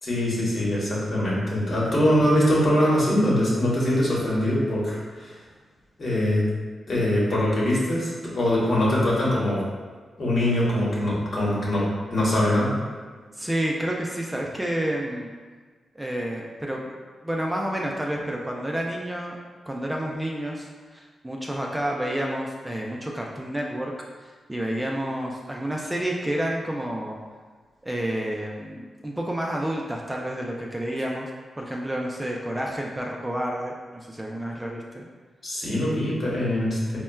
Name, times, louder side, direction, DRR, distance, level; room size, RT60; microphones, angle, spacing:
voice 1, 0.0-5.3 6.0-6.5 6.9-9.6 10.2-11.8 12.1-12.7 35.4-37.0, left 1 dB, 55° left, -6 dB, 1.0 m, -23 dB
voice 2, 13.3-15.3 15.9-16.9 17.2-19.4 19.7-23.9 24.5-27.2 27.8-31.3 31.6-35.1, right 1 dB, 10° right, -1 dB, 0.4 m, -29 dB
4.2 x 2.1 x 2.2 m, 1.5 s
cardioid pair, 75°, 0 cm